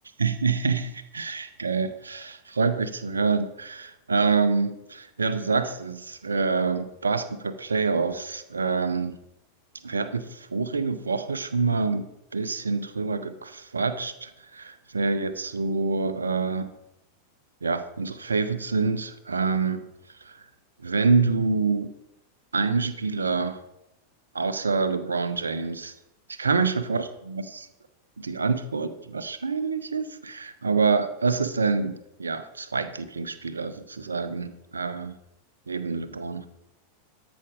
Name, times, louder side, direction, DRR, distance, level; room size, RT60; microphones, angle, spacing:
voice 1, 0.2-9.2 9.8-12.1 12.3-16.7 17.6-19.8 20.1-20.5 20.8-21.9 22.5-23.6 24.3-25.9 26.3-27.7 28.2-35.2 35.7-36.5, right 4 dB, 75° right, 11 dB, 0.7 m, -26 dB
13.0 x 6.1 x 5.1 m, 0.86 s
figure-of-eight pair, 90°, 0 cm